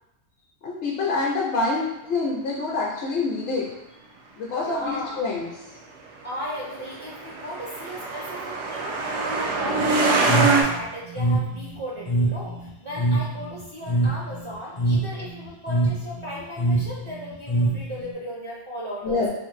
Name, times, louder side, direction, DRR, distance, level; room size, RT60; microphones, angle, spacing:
voice 1, 0.6-3.7 4.4-5.5 19.0-19.3, left 3 dB, 70° left, -4 dB, 0.8 m, -26 dB
voice 2, 4.5-5.3 6.2-19.2, equal, 35° right, -7 dB, 0.5 m, -36 dB
Truck, 6.5-10.6, right 3 dB, 85° right, 0.9 m, -24 dB
sound 1, 10.3-18.1, right 2 dB, 45° left, 0.3 m, -25 dB
3.2 x 2.1 x 3.1 m, 0.89 s
omnidirectional pair, 1.1 m